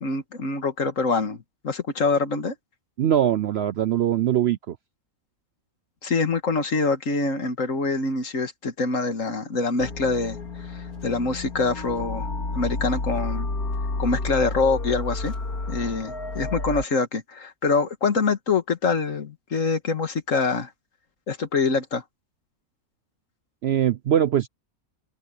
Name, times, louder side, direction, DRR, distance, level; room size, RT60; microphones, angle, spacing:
voice 1, 0.0-2.5 6.0-12.3 12.6-13.5 14.0-15.3 15.7-20.7 21.3-22.0, left 4 dB, 60° left, 2.1 m, -25 dB
voice 2, 3.0-4.8 23.6-24.5, right 10 dB, 65° right, 0.7 m, -22 dB
sound 1, 9.8-16.8, left 2 dB, 85° left, 3.4 m, -30 dB
omnidirectional pair, 1.5 m